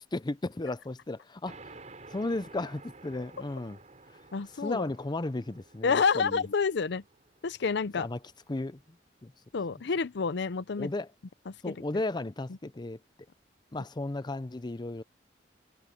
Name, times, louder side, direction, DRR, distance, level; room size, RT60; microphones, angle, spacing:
voice 1, 0.0-1.8 2.1-3.8 4.6-6.4 8.0-8.2 8.5-8.8 9.2-9.3 10.8-11.1 11.6-13.0 13.7-15.0, left 2 dB, 25° left, 0.6 m, -34 dB
sound 1, 1.5-8.6, right 3 dB, 40° right, 6.1 m, -52 dB
voice 2, 4.3-4.9 5.8-7.0 7.4-8.1 9.5-10.9 11.5-11.7, left 5 dB, 65° left, 0.6 m, -28 dB
head